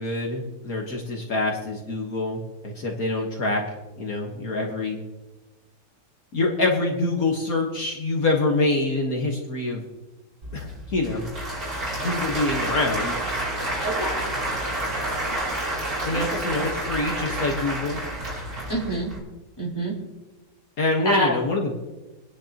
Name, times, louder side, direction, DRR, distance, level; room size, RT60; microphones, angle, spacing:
voice 1, 0.0-3.6 4.0-5.0 6.3-9.8 10.5-11.2 12.0-13.2 16.0-18.0 20.8-21.8, left 2 dB, 60° left, 0 dB, 1.9 m, -25 dB
Applause / Crowd, 10.4-19.2, right 1 dB, 60° right, 4.1 m, -29 dB
voice 2, 13.8-14.2 15.3-15.4 16.1-16.7 18.7-19.1 19.6-19.9 21.0-21.4, right 1 dB, 15° left, -5 dB, 4.0 m, -27 dB
24.5 x 10.0 x 3.0 m, 1.1 s
omnidirectional pair, 1.8 m